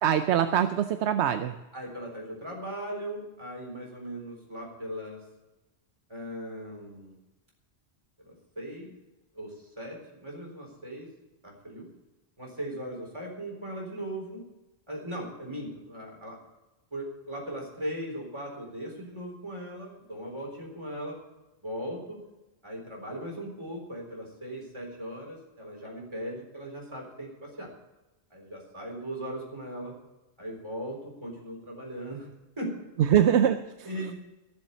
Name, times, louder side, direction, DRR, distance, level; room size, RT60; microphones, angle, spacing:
voice 1, 0.0-1.5 33.0-33.9, right 9 dB, 85° right, 9 dB, 1.0 m, -23 dB
voice 2, 1.7-5.2 6.1-7.2 8.2-9.0 9.3-11.1 11.4-11.9 12.4-14.5 14.9-16.4 16.9-21.2 21.6-22.2 22.6-27.7 28.3-29.9 30.4-32.3 32.6-32.8 33.1-33.3 33.9-34.2, right 1 dB, 25° right, -1 dB, 4.1 m, -38 dB
15.5 x 7.3 x 8.0 m, 1.0 s
omnidirectional pair, 1.1 m